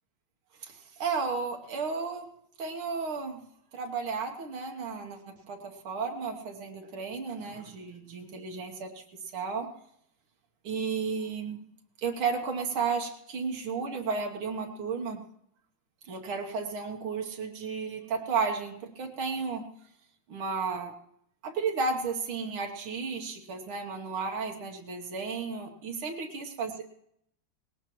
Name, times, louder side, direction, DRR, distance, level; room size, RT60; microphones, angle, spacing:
voice 1, 0.6-2.3 2.6-3.4 3.7-8.9 9.3-9.7 10.6-11.6 12.0-15.3 16.1-19.6 20.3-20.9 21.4-26.8, right 5 dB, 85° right, 2 dB, 2.0 m, -33 dB
19.5 x 17.0 x 3.0 m, 0.72 s
omnidirectional pair, 2.2 m